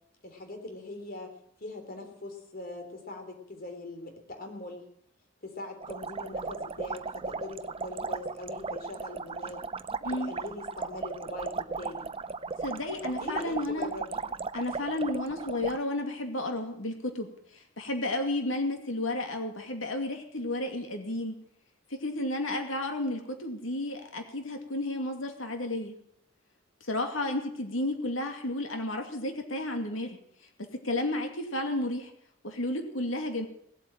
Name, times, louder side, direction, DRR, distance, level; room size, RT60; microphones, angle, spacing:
voice 1, 0.2-4.8 5.4-9.6 10.2-12.1 13.2-14.2, left 2 dB, 50° left, 4 dB, 3.5 m, -41 dB
sound 1, 5.8-15.8, right 4 dB, 30° right, 0.6 m, -36 dB
voice 2, 12.6-13.9 14.5-21.4 22.0-25.9 26.8-30.2 30.8-32.1 32.4-33.5, left 1 dB, 90° left, 4 dB, 2.5 m, -32 dB
18.5 x 8.4 x 8.8 m, 0.70 s
head